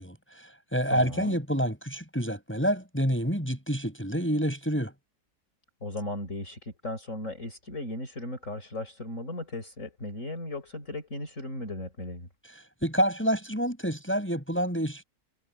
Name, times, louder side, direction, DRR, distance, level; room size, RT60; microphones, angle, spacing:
voice 1, 0.0-4.9 12.8-15.0, equal, 5° left, 7.0 m, -28 dB
voice 2, 0.9-1.3 5.8-12.3, left 1 dB, 55° left, 6.0 m, -36 dB
omnidirectional pair, 1.7 m